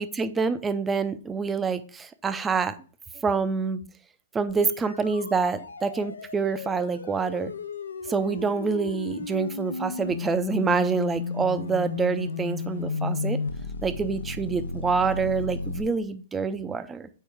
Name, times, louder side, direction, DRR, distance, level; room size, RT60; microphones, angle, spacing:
voice 1, 0.0-2.7 3.2-3.8 4.3-7.5 8.1-13.4 13.8-17.1, right 5 dB, 15° right, 11 dB, 0.5 m, -27 dB
sound 1, 4.5-15.8, left 4 dB, 80° left, 0.5 m, -33 dB
4.5 x 4.3 x 4.9 m, 0.41 s
hypercardioid pair, 120°, 0 cm